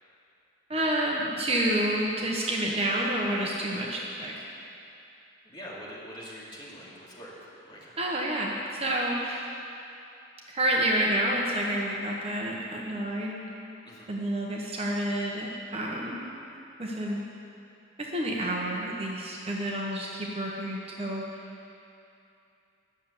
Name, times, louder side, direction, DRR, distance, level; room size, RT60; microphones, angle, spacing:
voice 1, 0.7-4.5 8.0-9.4 10.5-13.5 14.1-16.3 16.8-17.2 18.1-21.2, right 1 dB, 30° right, -2 dB, 1.0 m, -29 dB
voice 2, 5.4-7.9 13.8-14.1, equal, 25° left, -7 dB, 2.7 m, -44 dB
11.0 x 6.9 x 8.2 m, 2.7 s
head